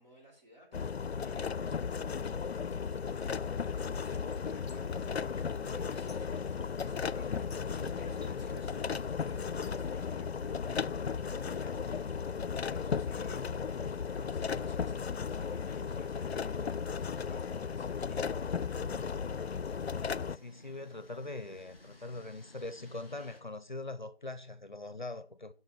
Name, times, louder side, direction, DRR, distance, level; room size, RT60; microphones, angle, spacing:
voice 1, 0.0-13.8 14.1-16.8 17.1-18.3, right 1 dB, 45° right, 5.7 m, -58 dB
sound 1, 0.7-20.4, left 6 dB, 85° left, 0.5 m, -35 dB
sound 2, 3.6-23.4, left 2 dB, 10° right, 1.3 m, -58 dB
sound 3, 4.3-9.9, left 3 dB, 30° left, 1.3 m, -58 dB
voice 2, 19.9-25.5, left 2 dB, 50° left, 0.7 m, -42 dB
7.6 x 6.0 x 7.0 m
figure-of-eight pair, 170°, 31 cm